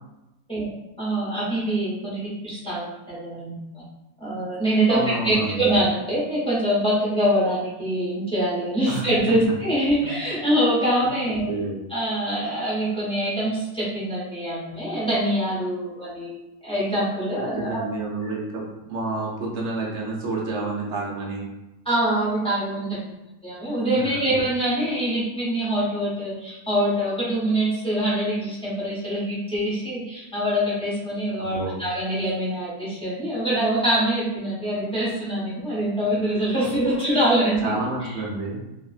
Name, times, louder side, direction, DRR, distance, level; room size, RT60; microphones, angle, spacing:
voice 1, 1.0-3.8 4.2-11.5 11.9-17.7 21.8-22.9 23.4-37.7, right 1 dB, 5° left, -9 dB, 0.4 m, -24 dB
voice 2, 4.9-5.6 8.9-9.1 10.0-10.1 11.0-11.1 11.5-11.8 17.6-18.6 18.9-21.5 23.9-24.2 31.4-31.8 36.6-37.0 37.6-38.6, right 2 dB, 60° right, -2 dB, 0.8 m, -29 dB
2.7 x 2.5 x 2.3 m, 0.96 s
omnidirectional pair, 1.6 m